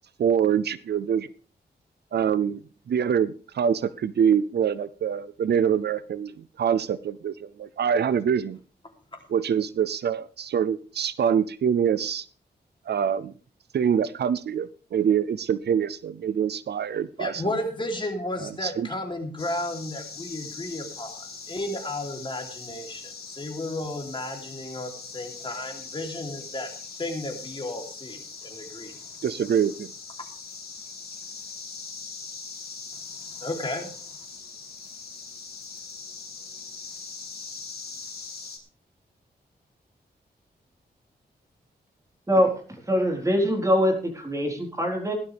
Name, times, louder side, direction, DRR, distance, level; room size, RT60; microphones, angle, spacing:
voice 1, 0.2-1.3 2.1-8.6 9.3-12.3 12.9-13.3 13.7-17.4 18.4-18.9 29.2-29.9, right 8 dB, 75° right, 17 dB, 0.5 m, -25 dB
voice 2, 17.2-26.7 27.0-29.1 33.3-33.9, left 1 dB, 30° left, 3 dB, 3.2 m, -33 dB
sound 1, 19.4-38.6, left 4 dB, 65° left, 3.7 m, -41 dB
voice 3, 42.9-45.1, equal, 20° right, 1 dB, 4.2 m, -23 dB
17.0 x 12.0 x 3.5 m, 0.40 s
wide cardioid pair, 100°, 17 cm